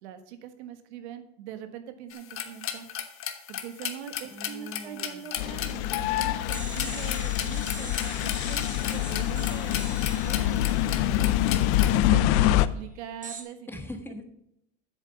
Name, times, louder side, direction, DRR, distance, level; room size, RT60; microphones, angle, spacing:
voice 1, 0.0-2.9 3.5-11.5 12.1-13.7, right 10 dB, 85° right, 9 dB, 1.4 m, -42 dB
sound 1, 2.1-12.0, left 9 dB, 40° left, 1.3 m, -36 dB
voice 2, 4.3-5.3 13.7-14.2, left 1 dB, 5° left, 5 dB, 1.4 m, -41 dB
sound 2, 5.4-12.7, left 13 dB, 75° left, 0.6 m, -25 dB
sound 3, 6.5-12.2 13.2-13.4, right 4 dB, 25° right, 1.8 m, -43 dB
7.9 x 7.5 x 5.7 m, 0.77 s
supercardioid pair, 115°, 33 cm